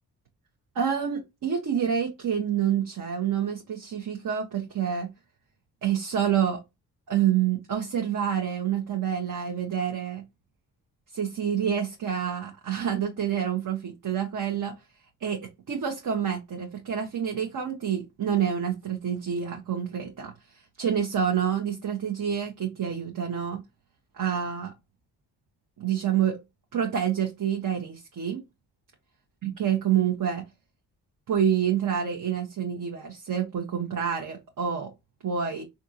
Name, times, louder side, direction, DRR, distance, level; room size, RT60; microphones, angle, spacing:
voice 1, 0.7-5.1 5.8-6.6 7.1-10.2 11.1-14.7 15.2-15.4 15.7-23.6 24.1-24.7 25.8-26.4 26.7-28.4 29.4-30.5 31.3-34.9 35.2-35.6, right 8 dB, 50° right, 0.8 m, -27 dB
3.5 x 2.6 x 2.7 m
supercardioid pair, 55°, 42 cm